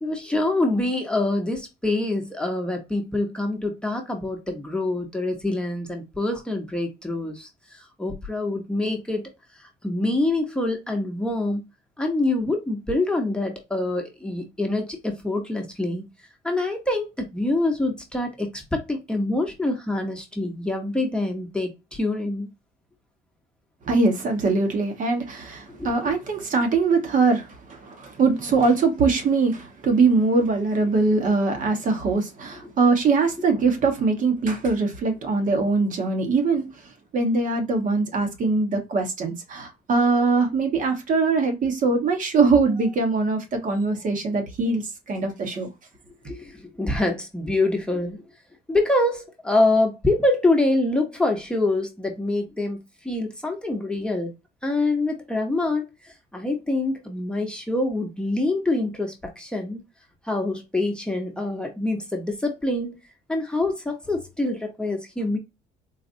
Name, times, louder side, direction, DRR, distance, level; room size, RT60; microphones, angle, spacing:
voice 1, 0.0-9.2 9.6-11.6 12.0-16.0 16.4-22.5 25.7-25.9 46.2-48.2 48.7-52.8 53.0-54.3 54.6-59.8 60.2-63.0 63.3-65.4, left 2 dB, 5° left, 0.9 m, -25 dB
voice 2, 23.8-36.6 37.1-45.7, right 4 dB, 50° right, 1.1 m, -22 dB
4.0 x 2.5 x 2.5 m
cardioid pair, 110°, 17 cm